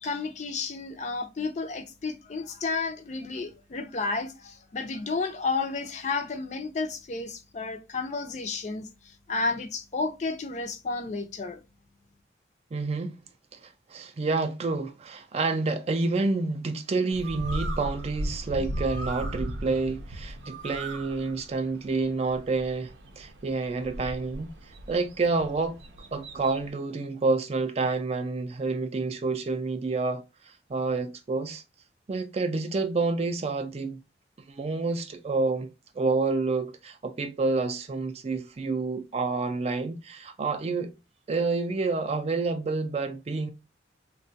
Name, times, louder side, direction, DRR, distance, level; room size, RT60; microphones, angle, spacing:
voice 1, 0.0-11.6, left 4 dB, 40° left, 0.4 m, -32 dB
voice 2, 12.7-13.2 13.5-24.5 24.9-25.8 26.1-31.6 32.1-34.0 34.5-35.7 36.0-40.9 41.3-43.5, right 3 dB, 35° right, 0.3 m, -28 dB
Bird, 17.1-26.7, right 1 dB, 85° right, 0.6 m, -37 dB
3.6 x 2.2 x 2.6 m
head